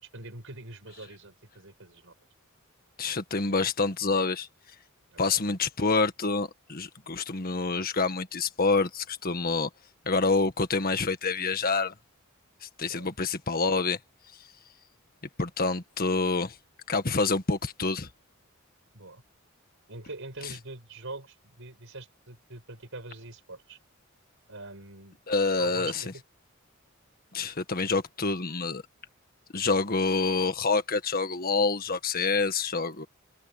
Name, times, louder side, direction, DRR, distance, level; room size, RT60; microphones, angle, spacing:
voice 1, 0.0-2.1 5.1-5.4 12.9-13.1 18.9-19.2 19.9-23.8 24.5-25.2 25.6-26.2, right 2 dB, 65° right, 7.3 m, -44 dB
voice 2, 3.0-4.5 5.2-9.7 10.0-11.9 12.6-14.0 14.3-14.4 15.4-16.6 16.9-18.1 25.3-26.0 27.3-28.8 29.5-33.1, left 4 dB, 45° left, 1.7 m, -27 dB
head